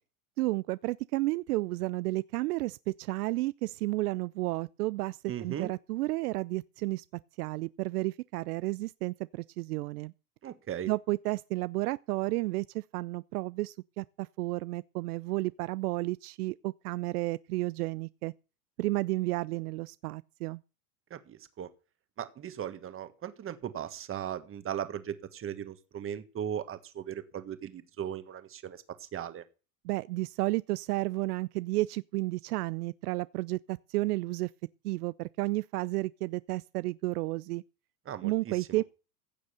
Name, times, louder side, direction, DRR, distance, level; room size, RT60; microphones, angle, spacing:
voice 1, 0.4-7.0 7.4-10.1 10.9-18.3 18.8-20.6 29.8-34.5 34.8-37.6 38.2-38.8, right 20 dB, 75° right, 0.6 m, -32 dB
voice 2, 5.3-5.7 10.4-10.9 21.1-21.7 22.2-29.4 38.0-38.8, right 9 dB, 30° right, 1.6 m, -38 dB
15.5 x 6.5 x 6.9 m
hypercardioid pair, 115°, 46 cm